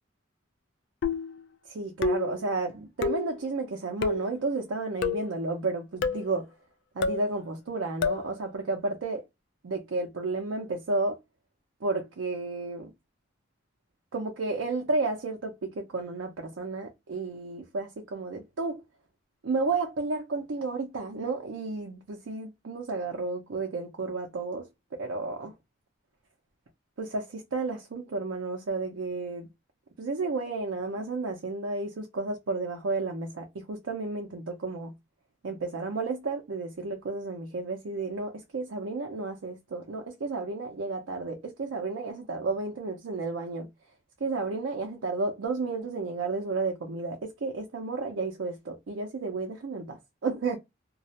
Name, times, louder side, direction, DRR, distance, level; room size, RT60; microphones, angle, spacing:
sound 1, 1.0-1.4 2.0-2.4 3.0-3.3 4.0-4.3 5.0-5.3 6.0-6.3 7.0-7.3 8.0-8.3, left 4 dB, 65° left, 0.3 m, -28 dB
voice 1, 1.7-6.5 7.0-9.2 9.6-11.2 11.8-12.9 14.1-18.8 19.4-24.7 24.9-25.5 27.0-29.5 30.0-34.9 35.4-43.7 44.2-50.6, right 3 dB, 80° right, 0.5 m, -32 dB
2.3 x 2.0 x 2.7 m
head